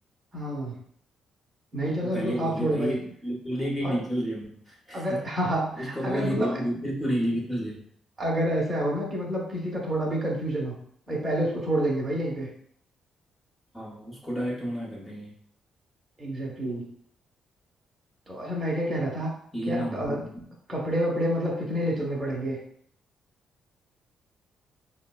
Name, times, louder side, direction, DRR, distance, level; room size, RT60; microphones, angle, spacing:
voice 1, 0.3-0.8 1.7-3.0 3.8-3.9 4.9-6.5 8.2-10.8 11.1-12.5 16.2-16.9 18.3-19.3 19.7-20.2 20.7-22.6, right 1 dB, 20° right, -4 dB, 0.8 m, -28 dB
voice 2, 2.0-5.2 5.8-7.8 13.7-15.3 19.5-20.3, equal, 15° left, -5 dB, 0.8 m, -31 dB
3.8 x 2.1 x 2.2 m, 0.64 s
cardioid pair, 90°, 0 cm